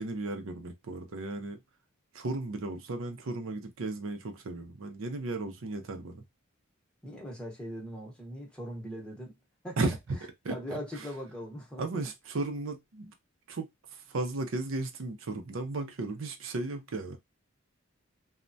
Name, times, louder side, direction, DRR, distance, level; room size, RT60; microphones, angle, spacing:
voice 1, 0.0-1.6 2.1-6.2 9.8-10.0 10.4-10.6 11.8-13.1 13.5-17.2, right 2 dB, 75° right, 0.5 m, -35 dB
voice 2, 7.0-9.4 9.6-9.9 10.5-11.8, equal, 5° left, 0.8 m, -40 dB
3.2 x 2.1 x 2.5 m
head